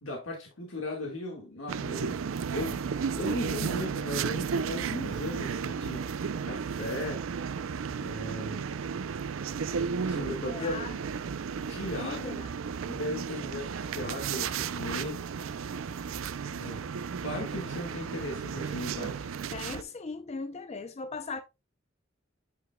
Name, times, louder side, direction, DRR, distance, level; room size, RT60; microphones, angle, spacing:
voice 1, 0.0-2.2 2.5-2.8 3.2-6.1 6.4-7.3 8.0-8.7 10.0-10.8 11.7-12.4 12.9-15.2 16.5-16.8 17.2-19.3, left 1 dB, 80° left, 1.7 m, -37 dB
sound 1, 1.7-19.8, right 6 dB, 85° right, 0.5 m, -34 dB
voice 2, 10.5-11.0 12.0-12.5 19.5-21.4, left 4 dB, 35° left, 0.5 m, -38 dB
9.5 x 5.0 x 2.2 m
head